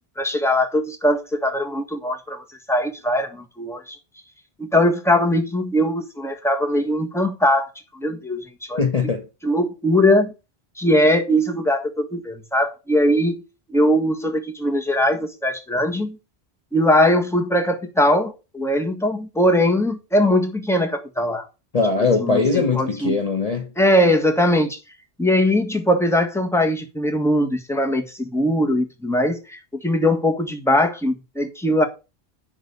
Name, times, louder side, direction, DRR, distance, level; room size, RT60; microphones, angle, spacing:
voice 1, 0.2-4.0 4.6-7.7 7.9-8.8 9.4-10.3 10.8-13.4 13.7-16.2 16.7-21.5 22.2-23.2 23.8-24.8 25.2-31.9, left 1 dB, 5° left, 1.6 m, -20 dB
voice 2, 8.8-9.3 21.7-23.7, left 4 dB, 35° left, 1.0 m, -20 dB
11.0 x 4.1 x 6.7 m
omnidirectional pair, 1.1 m